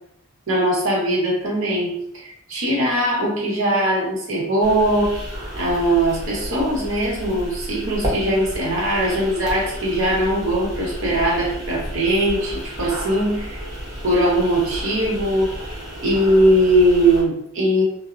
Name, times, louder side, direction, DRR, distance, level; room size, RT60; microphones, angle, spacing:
voice 1, 0.5-5.2 5.6-13.6 14.0-15.5 16.0-17.8, right 1 dB, 80° right, -4 dB, 0.9 m, -20 dB
sound 1, 4.6-17.2, equal, 15° right, 0.7 m, -32 dB
2.0 x 2.0 x 3.6 m, 0.74 s
head